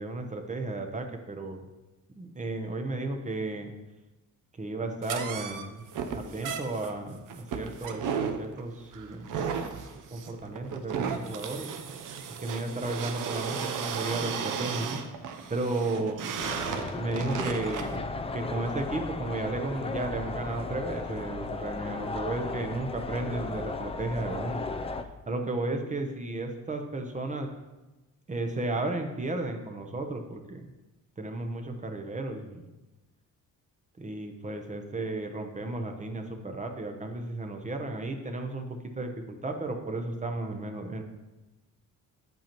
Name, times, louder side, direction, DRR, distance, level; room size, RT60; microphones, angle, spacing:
voice 1, 0.0-1.7 2.1-3.7 4.6-5.8 6.1-9.4 10.1-11.9 12.4-15.0 15.5-16.4 16.9-24.6 25.3-27.5 28.3-30.7 31.2-32.6 34.0-39.1 39.4-41.0, right 2 dB, 20° right, 4 dB, 0.8 m, -34 dB
sound 1, 5.0-18.0, right 6 dB, 70° right, 0.7 m, -35 dB
sound 2, 16.4-25.0, left 3 dB, 20° left, 0.4 m, -35 dB
8.7 x 7.9 x 3.0 m, 1.1 s
cardioid pair, 130°, 33 cm